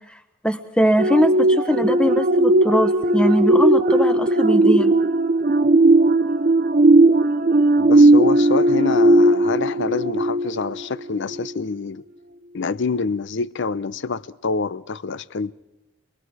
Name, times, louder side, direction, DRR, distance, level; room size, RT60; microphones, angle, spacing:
voice 1, 0.4-4.9, equal, 5° left, 1.1 m, -20 dB
sound 1, 1.0-10.8 11.3-11.5, right 2 dB, 40° right, 0.6 m, -17 dB
voice 2, 7.8-12.0 12.5-15.5, left 4 dB, 60° left, 0.6 m, -26 dB
26.0 x 21.0 x 4.8 m
head